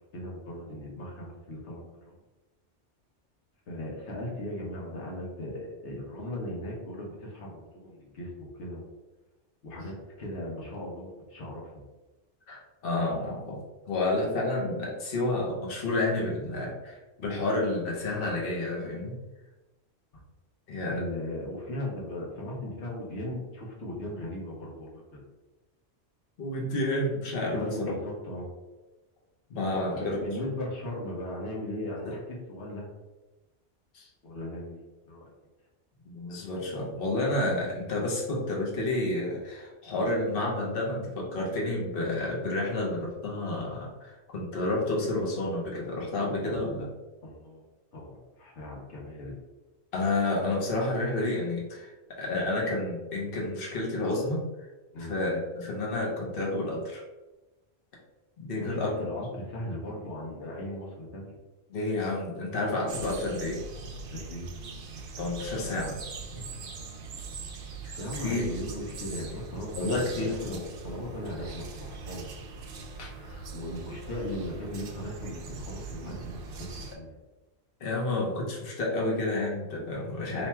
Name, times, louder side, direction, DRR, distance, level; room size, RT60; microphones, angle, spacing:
voice 1, 0.0-2.1 3.7-8.9 9.6-11.8 20.9-25.2 27.5-28.5 29.7-32.9 34.2-35.3 46.4-46.6 47.2-47.6 47.9-49.3 54.9-55.1 58.6-61.3 64.1-64.5 66.3-66.6 68.0-72.4 72.7-72.8 73.1-77.2, left 1 dB, 85° left, -2 dB, 1.2 m, -38 dB
voice 2, 12.5-13.6 13.9-19.1 20.7-21.0 26.4-27.9 29.5-30.2 32.0-32.2 33.9-34.1 36.1-46.9 49.9-54.4 55.0-57.0 58.4-59.0 61.7-63.6 65.2-66.0 67.8-68.4 69.8-70.3 73.0-73.1 77.8-80.5, left 2 dB, 55° left, -3 dB, 1.0 m, -30 dB
sound 1, 62.9-77.0, right 4 dB, 60° right, 0.7 m, -41 dB
3.1 x 2.3 x 4.2 m, 1.1 s
omnidirectional pair, 1.2 m